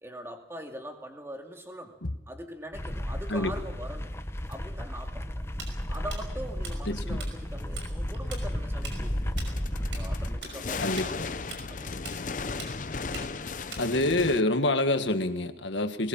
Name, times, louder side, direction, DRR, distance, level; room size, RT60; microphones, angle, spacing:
voice 1, 0.0-4.2 4.5-5.4 5.9-9.4 9.8-11.4 11.7-12.6, equal, 15° right, 4 dB, 2.2 m, -42 dB
sound 1, 2.7-10.4, equal, 15° left, 0.9 m, -33 dB
sound 2, 4.5-4.6 5.9-6.0 8.1-8.2 8.8-14.4, left 4 dB, 45° left, 0.7 m, -36 dB
Tools, 5.6-7.3 7.6-7.9 8.1-14.2, right 4 dB, 80° right, 5.5 m, -42 dB
voice 2, 6.9-7.2 10.8-11.1 13.8-16.1, left 2 dB, 80° left, 8 dB, 1.6 m, -26 dB
20.5 x 20.0 x 7.2 m, 0.97 s
head